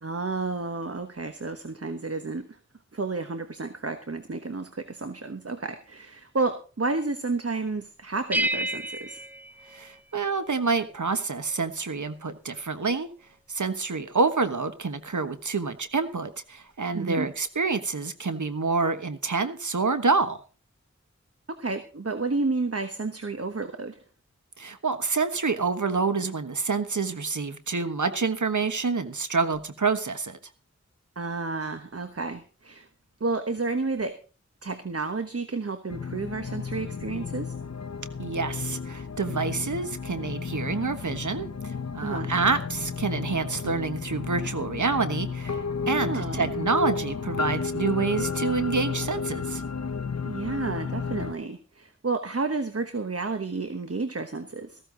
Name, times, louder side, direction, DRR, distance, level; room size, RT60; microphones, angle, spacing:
voice 1, 0.0-2.6 2.9-9.2 16.9-17.3 21.5-24.0 31.2-32.9 33.2-34.2 34.6-37.5 42.0-42.3 45.9-46.5 50.3-54.8, right 3 dB, 55° right, 8 dB, 1.2 m, -31 dB
sound 1, 8.3-10.5, right 1 dB, 5° right, 0.6 m, -31 dB
voice 2, 9.7-13.1 13.5-20.4 24.6-30.4 38.2-49.6, right 4 dB, 90° right, 10 dB, 1.3 m, -27 dB
sound 2, 35.9-51.3, left 5 dB, 65° left, 0.9 m, -32 dB
14.5 x 13.5 x 3.9 m, 0.36 s
wide cardioid pair, 45°, 29 cm